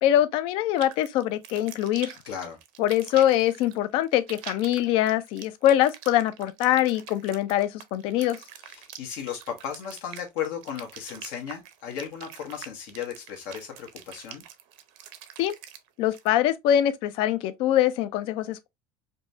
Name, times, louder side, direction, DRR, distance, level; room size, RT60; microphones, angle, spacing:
voice 1, 0.0-2.1 2.8-8.4 15.4-15.5 16.0-18.7, left 12 dB, 55° left, 0.5 m, -23 dB
sound 1, 0.8-16.3, right 10 dB, 70° right, 0.6 m, -45 dB
voice 2, 2.3-2.6 8.6-14.4, left 8 dB, 75° left, 1.1 m, -35 dB
5.2 x 2.1 x 2.5 m
cardioid pair, 150°, 10 cm